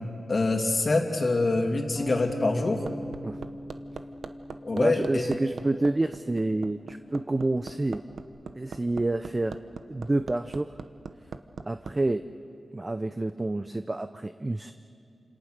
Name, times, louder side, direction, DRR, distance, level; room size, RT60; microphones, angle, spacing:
voice 1, 0.3-2.8 4.6-5.4, left 3 dB, 45° left, 2 dB, 2.8 m, -25 dB
Bass guitar, 2.0-8.2, equal, 25° left, 2.2 m, -42 dB
Hammer, 2.0-11.9 13.3-13.4, right 5 dB, 80° right, 0.9 m, -40 dB
voice 2, 4.7-8.0 8.5-9.6 9.9-10.7 11.7-12.2 12.7-14.7, right 2 dB, 25° right, 10 dB, 0.6 m, -28 dB
28.5 x 27.5 x 6.6 m, 2.4 s
wide cardioid pair, 115°, 0 cm